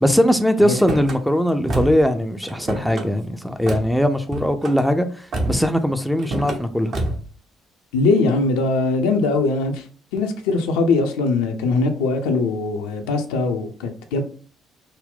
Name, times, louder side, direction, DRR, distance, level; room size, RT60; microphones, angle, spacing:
voice 1, 0.0-5.1 5.5-6.9, equal, ahead, 0.4 m, -20 dB
Car / Slam, 0.7-1.2 1.7-2.1 2.4-3.1 3.7-3.9 4.3-4.8 5.3-5.7 6.2-6.6 6.9-7.3, right 1 dB, 45° right, 0.8 m, -27 dB
voice 2, 7.9-9.8 10.1-14.2, left 3 dB, 65° left, 0.5 m, -21 dB
3.8 x 2.1 x 3.5 m
figure-of-eight pair, 45°, 0 cm